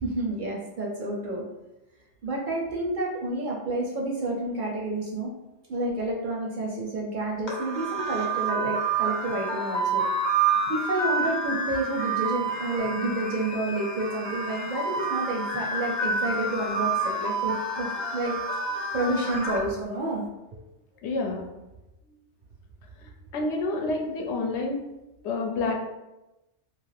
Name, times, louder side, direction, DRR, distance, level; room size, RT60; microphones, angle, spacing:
voice 1, 0.0-1.4 2.2-5.3 5.7-10.0 10.7-18.3 18.9-20.2, right 2 dB, 55° right, -3 dB, 0.6 m, -29 dB
sound 1, 7.5-19.6, right 3 dB, 30° left, 0.7 m, -28 dB
voice 2, 21.0-21.5 23.0-24.8 25.2-25.8, left 3 dB, 75° left, 1 dB, 0.8 m, -29 dB
2.4 x 2.4 x 3.3 m, 0.97 s
omnidirectional pair, 1.2 m